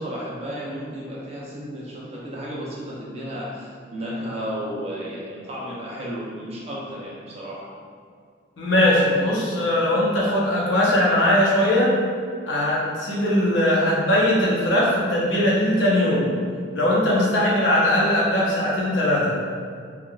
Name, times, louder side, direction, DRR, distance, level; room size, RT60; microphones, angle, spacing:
voice 1, 0.0-7.7, equal, 35° right, -5 dB, 0.5 m, -33 dB
voice 2, 8.6-11.9 12.5-16.3 16.7-19.3, left 1 dB, 70° left, -6 dB, 0.7 m, -20 dB
3.3 x 2.3 x 2.3 m, 2.1 s
head